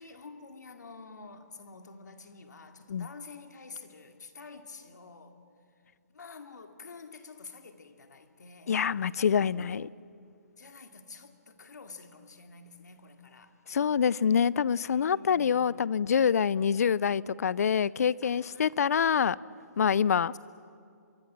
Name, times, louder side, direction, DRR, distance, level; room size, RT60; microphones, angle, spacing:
voice 1, 0.0-5.4 6.1-9.2 9.5-10.1 10.6-13.5 14.7-15.7 18.2-18.7, left 4 dB, 80° left, 6 dB, 2.4 m, -49 dB
voice 2, 8.7-9.9 13.7-19.4 19.8-20.3, left 7 dB, 60° left, 22 dB, 0.5 m, -26 dB
24.0 x 24.0 x 7.4 m, 2.4 s
hypercardioid pair, 155°, 9 cm